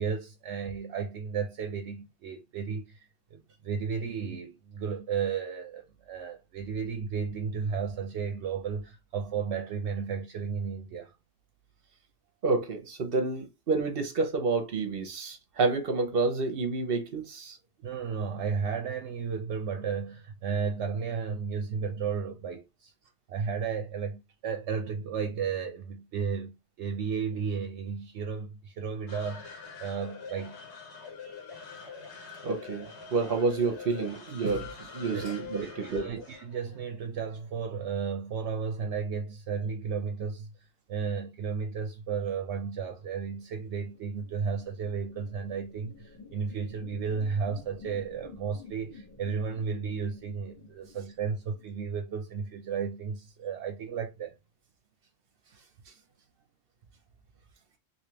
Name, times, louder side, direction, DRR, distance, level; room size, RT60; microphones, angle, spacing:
voice 1, 0.0-3.0 3.3-11.1 17.8-22.9 23.3-30.6 35.1-35.3 35.6-40.5 40.9-54.3, right 6 dB, 80° right, 0.9 m, -33 dB
voice 2, 12.4-17.6 32.4-36.2, right 3 dB, 60° right, 1.0 m, -29 dB
sound 1, 29.1-37.5, left 5 dB, 75° left, 1.3 m, -44 dB
sound 2, 42.7-52.4, left 3 dB, 45° left, 1.6 m, -51 dB
3.3 x 2.8 x 2.8 m
omnidirectional pair, 1.1 m